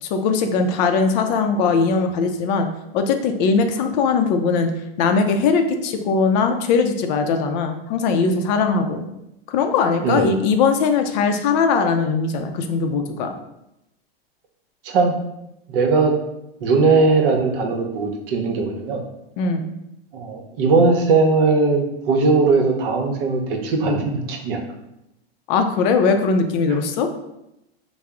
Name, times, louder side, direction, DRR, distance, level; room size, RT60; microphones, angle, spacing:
voice 1, 0.0-2.7 2.9-4.7 5.0-9.1 9.5-13.3 19.4-19.7 25.5-27.1, left 5 dB, 45° left, 6 dB, 0.4 m, -20 dB
voice 2, 15.7-16.1 16.6-19.0 20.1-24.6, right 4 dB, 60° right, 3 dB, 0.8 m, -19 dB
3.5 x 2.0 x 3.4 m, 0.86 s
hypercardioid pair, 115°, 31 cm